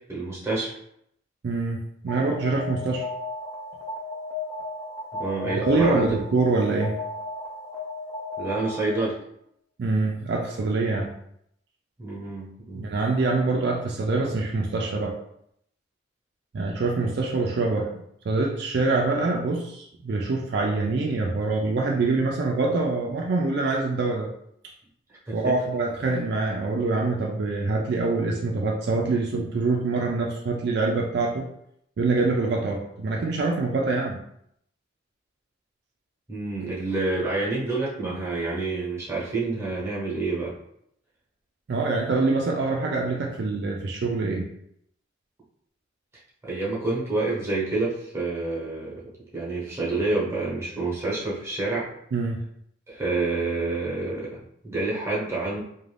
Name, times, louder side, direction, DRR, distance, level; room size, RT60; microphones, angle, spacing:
voice 1, 0.1-0.7 5.2-6.1 8.4-9.2 12.0-12.9 25.3-25.5 36.3-40.5 46.4-49.0 49.3-51.9 52.9-55.6, right 3 dB, 15° right, -6 dB, 0.8 m, -28 dB
voice 2, 1.4-1.8 2.0-3.0 5.7-6.9 9.8-11.1 12.7-15.1 16.5-24.3 25.3-31.5 32.0-34.2 41.7-44.4 52.1-52.4, right 3 dB, 60° right, -1 dB, 0.4 m, -25 dB
Alarm, 2.1-9.2, left 3 dB, 15° left, 0.5 m, -35 dB
2.5 x 2.2 x 3.2 m, 0.73 s
head